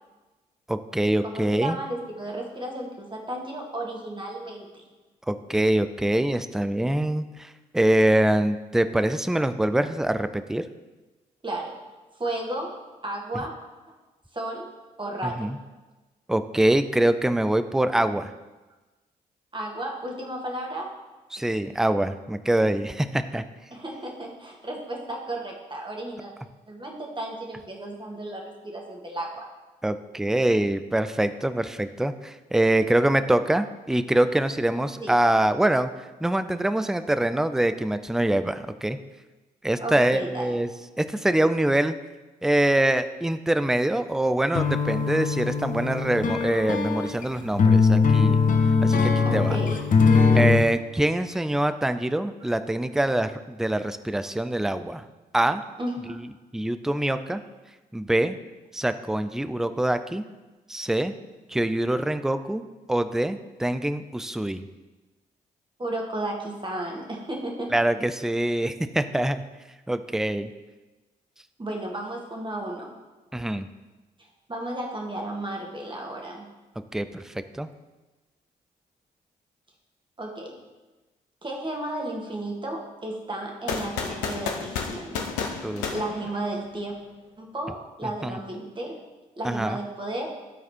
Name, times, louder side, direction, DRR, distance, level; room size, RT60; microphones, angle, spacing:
voice 1, 0.7-1.8 5.3-10.6 15.2-15.6 16.3-18.3 21.3-23.4 29.8-35.9 36.2-39.0 39.6-40.7 41.0-42.0 42.4-48.4 48.8-49.6 50.3-55.0 55.3-55.6 56.1-56.3 56.5-57.4 57.9-58.4 58.7-60.2 60.7-61.1 61.5-62.6 62.9-64.6 67.7-69.4 69.9-70.5 73.3-73.7 76.9-77.7 85.6-85.9 88.2-88.4 89.4-89.8, right 1 dB, ahead, 10 dB, 0.4 m, -24 dB
voice 2, 1.2-4.9 11.4-11.7 12.2-12.7 13.0-13.5 14.3-14.7 15.0-15.5 19.5-20.9 23.7-26.3 26.7-29.4 35.0-35.1 39.8-40.5 49.3-49.8 55.8-56.2 65.8-67.8 71.6-72.9 74.5-76.5 80.2-80.6 81.4-85.2 85.9-87.0 87.4-89.0 89.4-90.3, right 1 dB, 25° right, 0 dB, 1.9 m, -33 dB
sound 1, 44.6-50.7, left 5 dB, 40° left, 0.9 m, -21 dB
sound 2, 83.7-86.9, left 5 dB, 70° left, 0.8 m, -32 dB
12.0 x 4.1 x 4.3 m, 1.2 s
figure-of-eight pair, 40°, 21 cm